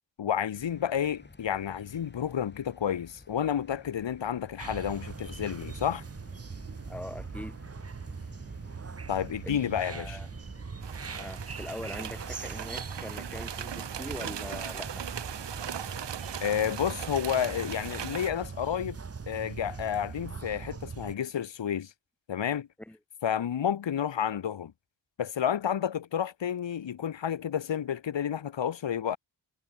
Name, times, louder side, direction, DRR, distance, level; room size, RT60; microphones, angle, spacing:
voice 1, 0.2-6.0 9.1-10.2 16.4-19.0 19.3-21.9 22.3-22.7 23.2-24.7 25.2-29.2, left 9 dB, 90° left, 1.2 m, -30 dB
sound 1, 0.5-17.0, left 3 dB, 25° left, 2.9 m, -54 dB
sound 2, 4.6-21.1, right 5 dB, 35° right, 1.1 m, -41 dB
voice 2, 6.9-7.7 9.4-10.3 11.1-15.0 22.8-23.0, left 1 dB, 5° left, 2.1 m, -42 dB
sound 3, 10.8-18.3, right 9 dB, 75° right, 1.0 m, -39 dB
wide cardioid pair, 135°, 43 cm